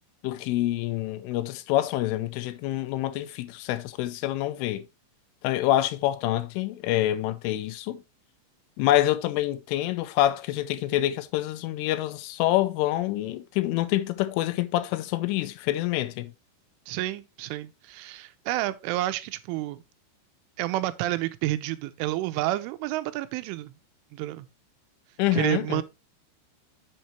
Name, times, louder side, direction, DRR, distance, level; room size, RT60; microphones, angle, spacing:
voice 1, 0.2-4.8 5.4-8.0 8.8-16.3 25.2-25.8, left 14 dB, 85° left, 3.2 m, -26 dB
voice 2, 16.9-19.8 20.6-23.7 24.1-24.5 25.3-25.8, right 16 dB, 85° right, 3.1 m, -29 dB
8.0 x 7.5 x 3.1 m
omnidirectional pair, 5.7 m